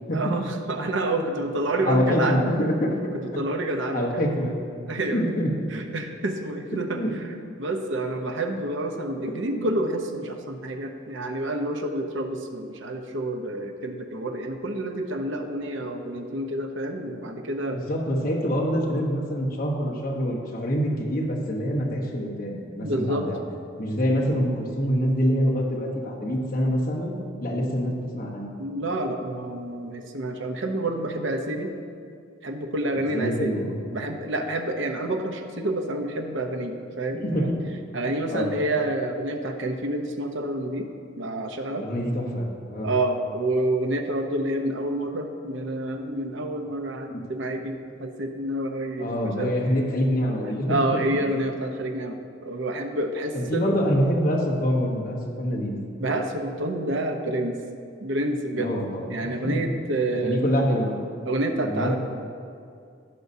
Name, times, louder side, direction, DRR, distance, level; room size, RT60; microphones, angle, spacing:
voice 1, 0.1-2.4 3.2-4.3 4.9-5.2 5.7-17.8 22.8-23.3 28.6-31.7 32.4-33.6 33.9-37.5 37.9-40.9 41.2-41.9 42.8-49.5 50.7-53.7 56.0-57.6 58.0-58.8 59.1-60.4 61.3-61.9, right 1 dB, 65° right, 5 dB, 0.8 m, -28 dB
voice 2, 1.8-3.0 3.9-4.6 5.1-5.5 6.7-7.1 9.4-9.6 17.7-23.4 23.8-27.1 27.4-28.5 32.9-33.8 37.2-37.6 38.3-38.5 41.8-42.9 47.1-47.2 49.0-51.0 53.3-55.8 58.6-59.6 60.2-61.0 61.6-61.9, equal, 45° left, -3 dB, 1.0 m, -25 dB
15.5 x 5.3 x 2.7 m, 2.3 s
head